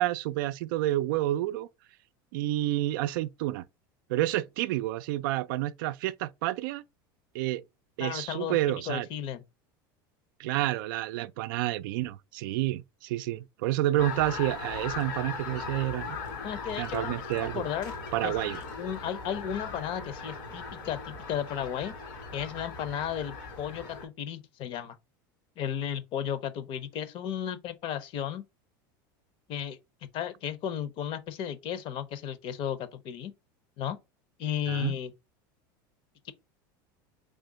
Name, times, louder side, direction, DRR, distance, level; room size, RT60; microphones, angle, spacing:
voice 1, 0.0-1.7 2.3-3.6 4.1-6.8 7.3-7.6 8.0-9.1 10.4-16.2 16.8-17.7 18.1-18.6 34.7-34.9, right 15 dB, 70° right, 0.4 m, -29 dB
voice 2, 8.0-8.6 8.9-9.4 16.4-17.2 17.5-17.9 18.2-21.9 22.3-25.0 25.6-28.4 29.5-29.8 30.1-33.3 33.8-34.0 34.4-35.1 36.2-36.3, left 9 dB, 50° left, 0.7 m, -34 dB
sound 1, 14.0-24.1, left 4 dB, 80° left, 2.5 m, -39 dB
3.7 x 3.4 x 3.8 m
supercardioid pair, 110°, 11 cm